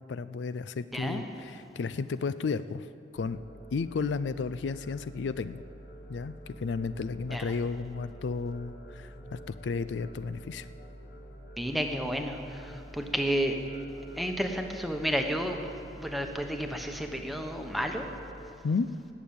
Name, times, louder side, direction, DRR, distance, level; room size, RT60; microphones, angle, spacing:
voice 1, 0.0-2.9 3.1-3.4 3.7-5.6 6.1-10.7 18.6-18.9, left 4 dB, 80° left, 14 dB, 0.4 m, -33 dB
voice 2, 0.9-1.3 7.3-7.5 11.6-13.6 14.2-15.6 16.0-18.1, equal, ahead, 3 dB, 1.0 m, -31 dB
sound 1, 3.1-18.5, equal, 50° left, 1.6 m, -47 dB
19.5 x 6.9 x 8.7 m, 2.7 s
head